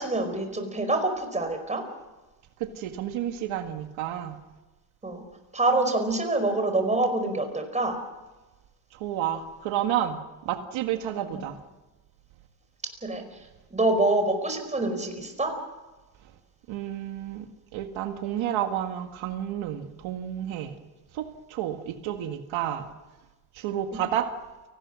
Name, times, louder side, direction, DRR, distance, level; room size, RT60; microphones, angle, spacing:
voice 1, 0.0-1.8 5.0-5.2 5.5-8.0 13.0-13.2 13.7-15.5 23.9-24.0, right 2 dB, 15° right, 5 dB, 5.2 m, -26 dB
voice 2, 2.6-4.3 9.0-10.2 10.5-11.5 16.7-17.5 17.7-20.7 21.1-22.9 23.6-24.3, right 11 dB, 90° right, 6 dB, 2.0 m, -30 dB
29.5 x 19.0 x 6.3 m, 1.2 s
cardioid pair, 125°, 45 cm